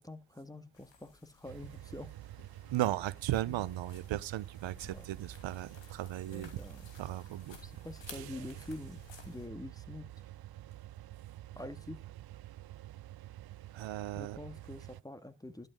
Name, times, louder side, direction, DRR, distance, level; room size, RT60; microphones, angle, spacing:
voice 1, 0.0-2.1 3.5-3.6 4.9-5.0 6.3-6.9 7.6-10.2 11.6-12.0 14.1-15.7, left 1 dB, 10° left, 1.8 m, -46 dB
sound 1, 0.7-9.5, left 5 dB, 80° left, 2.9 m, -56 dB
sound 2, 1.4-15.0, right 14 dB, 60° right, 0.5 m, -48 dB
voice 2, 2.7-6.5 7.0-7.6 13.7-14.4, right 14 dB, 90° right, 0.8 m, -36 dB
12.0 x 8.5 x 3.7 m
supercardioid pair, 40°, 44 cm